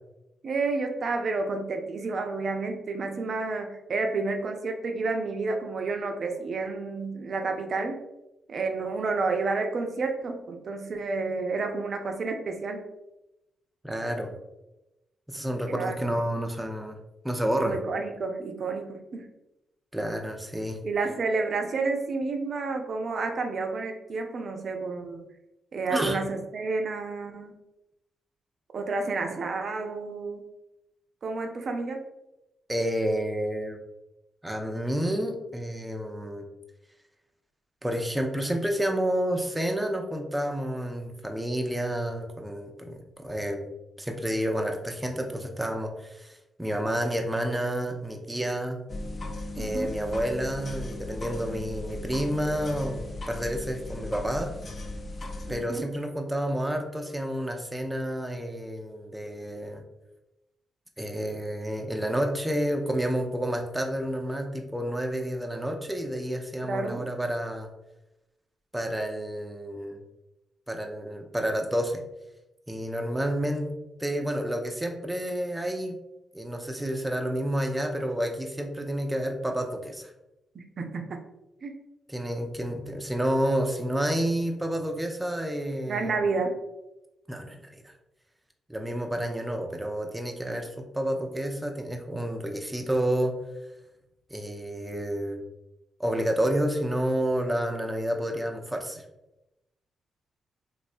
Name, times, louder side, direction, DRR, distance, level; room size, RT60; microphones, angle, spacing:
voice 1, 0.4-8.0 8.5-12.8 15.7-16.0 17.6-19.3 20.8-25.2 25.7-27.5 28.7-30.4 31.2-32.0 49.6-49.9 55.5-55.8 66.6-67.0 80.5-81.0 81.6-81.7 85.9-86.5, right 3 dB, 55° right, 4 dB, 0.5 m, -30 dB
voice 2, 13.8-14.3 15.3-17.0 17.2-17.8 19.9-20.8 25.9-26.2 32.7-33.8 34.4-36.5 37.8-43.7 44.0-48.8 49.6-54.5 55.5-59.8 61.0-67.7 68.7-70.0 70.7-72.0 72.7-73.7 74.0-76.0 76.3-80.1 82.1-86.1 87.3-87.9 88.7-93.4 94.3-95.4 96.0-99.0, equal, 10° right, 3 dB, 0.5 m, -30 dB
sound 1, 48.9-55.6, left 2 dB, 50° left, 0.5 m, -37 dB
3.1 x 2.5 x 2.6 m, 0.93 s
hypercardioid pair, 40°, 0 cm